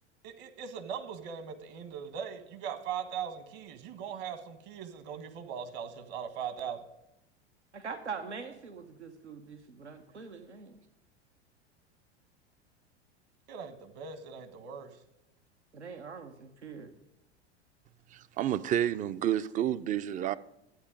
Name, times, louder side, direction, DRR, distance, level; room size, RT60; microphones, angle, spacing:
voice 1, 0.2-6.8 13.5-15.0, right 7 dB, 55° right, 1.5 m, -40 dB
voice 2, 7.7-10.8 15.7-16.9, right 5 dB, 90° right, 1.0 m, -43 dB
voice 3, 18.1-20.3, right 11 dB, 25° right, 0.4 m, -30 dB
12.5 x 8.5 x 5.1 m
hypercardioid pair, 85°, 33 cm